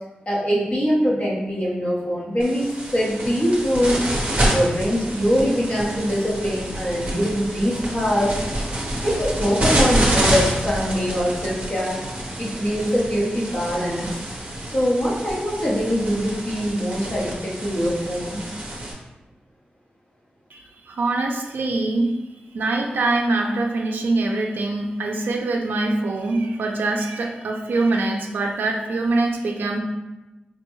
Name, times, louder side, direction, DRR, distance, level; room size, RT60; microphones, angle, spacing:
voice 1, 0.3-4.0 4.5-8.4 9.0-12.0 12.4-14.2 14.6-18.4, equal, 30° left, -6 dB, 1.0 m, -23 dB
sound 1, 2.4-18.9, right 1 dB, 40° right, 0.8 m, -27 dB
voice 2, 20.5-22.2 22.5-29.8, right 2 dB, 80° right, 2 dB, 0.4 m, -23 dB
4.8 x 2.2 x 3.0 m, 1.0 s
wide cardioid pair, 175°, 3 cm